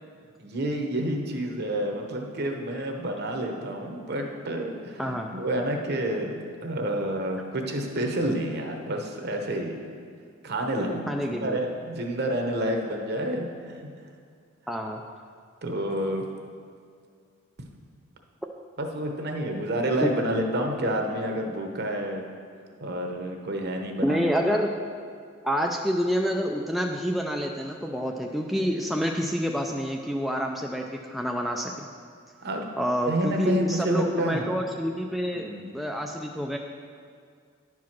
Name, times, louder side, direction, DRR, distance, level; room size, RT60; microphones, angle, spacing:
voice 1, 0.4-9.8 10.4-13.9 15.6-16.3 18.8-22.2 22.8-24.6 32.4-32.7 33.1-34.4 35.3-35.7, right 1 dB, 50° right, 3 dB, 1.0 m, -29 dB
voice 2, 11.1-11.6 14.7-15.0 20.0-20.1 24.0-24.7 25.4-31.9 32.8-36.6, equal, ahead, 1 dB, 0.3 m, -28 dB
10.5 x 4.8 x 5.9 m, 2.1 s
head